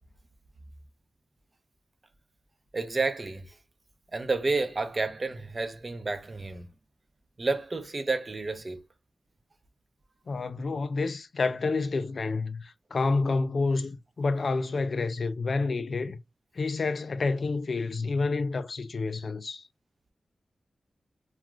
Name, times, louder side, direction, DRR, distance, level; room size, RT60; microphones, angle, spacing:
voice 1, 2.7-3.5 4.1-6.7 7.4-8.8, right 3 dB, 45° right, 0.6 m, -30 dB
voice 2, 10.3-16.2 16.5-19.7, left 3 dB, 65° left, 0.4 m, -29 dB
2.4 x 2.3 x 3.0 m
cardioid pair, 50°, 0 cm